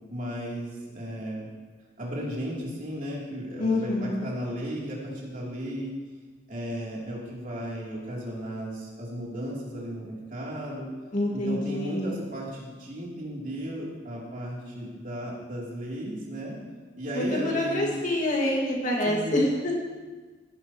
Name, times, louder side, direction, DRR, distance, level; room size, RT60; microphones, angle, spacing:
voice 1, 0.1-1.5 2.0-5.9 6.5-10.9 11.3-16.6 17.0-18.0 19.0-19.4, equal, 50° right, -5 dB, 3.0 m, -35 dB
voice 2, 3.6-4.3 11.1-12.2 17.1-19.7, left 1 dB, 45° left, -2 dB, 1.9 m, -26 dB
16.5 x 9.8 x 3.0 m, 1.4 s
head